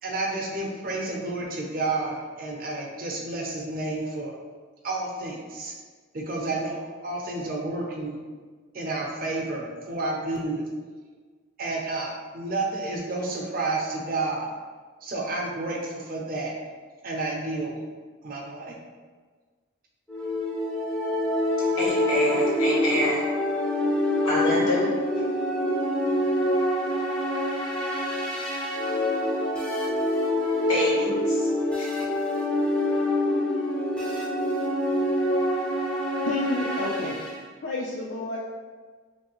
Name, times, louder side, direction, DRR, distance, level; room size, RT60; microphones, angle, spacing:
voice 1, 0.0-4.3 4.8-5.7 6.1-8.2 8.7-10.7 11.6-14.5 15.0-16.5 17.0-17.8 18.2-18.7, right 2 dB, 45° right, -1 dB, 0.5 m, -30 dB
sound 1, 20.1-37.4, left 1 dB, 5° left, 0.5 m, -26 dB
voice 2, 21.7-23.2 24.2-24.9 30.7-31.5 31.8-31.9, equal, 85° left, -5 dB, 1.2 m, -27 dB
voice 3, 36.2-37.2 37.6-38.4, left 2 dB, 65° left, -4 dB, 0.4 m, -29 dB
3.2 x 3.1 x 3.0 m, 1.5 s
head